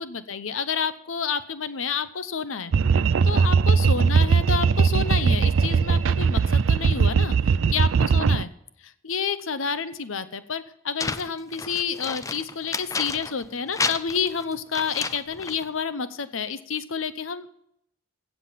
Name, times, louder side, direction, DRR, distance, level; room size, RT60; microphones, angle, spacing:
voice 1, 0.0-2.7 3.2-8.5 9.0-17.5, left 6 dB, 80° left, 13 dB, 0.8 m, -29 dB
sound 1, 2.7-8.4, right 5 dB, 70° right, 0.4 m, -20 dB
sound 2, 11.0-13.5 13.7-15.6, left 4 dB, 15° left, 0.5 m, -31 dB
16.0 x 7.5 x 5.8 m, 0.74 s
head